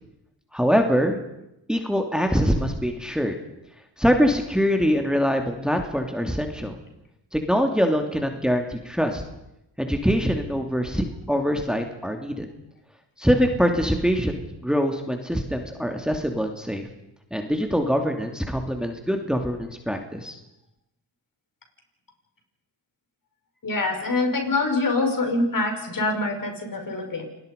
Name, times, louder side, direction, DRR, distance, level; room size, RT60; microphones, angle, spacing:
voice 1, 0.5-1.2 1.7-3.4 4.0-6.8 7.3-9.2 9.8-12.5 13.2-16.9 17.3-20.4, equal, ahead, 4 dB, 2.7 m, -23 dB
voice 2, 23.6-27.2, left 2 dB, 50° left, 4 dB, 5.6 m, -25 dB
28.0 x 20.0 x 5.4 m, 0.86 s
cardioid pair, 60°, 42 cm